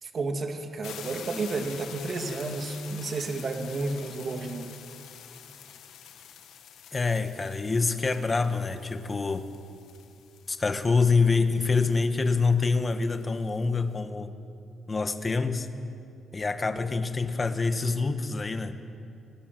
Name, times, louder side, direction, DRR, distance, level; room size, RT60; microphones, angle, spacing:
voice 1, 0.0-4.7, right 3 dB, 40° right, 4 dB, 2.3 m, -32 dB
sound 1, 0.8-13.6, left 9 dB, 85° left, 1.7 m, -46 dB
voice 2, 6.9-9.5 10.5-14.3 14.9-15.7 16.3-18.8, left 4 dB, 25° left, 8 dB, 1.5 m, -26 dB
25.0 x 20.5 x 7.7 m, 2.6 s
cardioid pair, 125°, 0 cm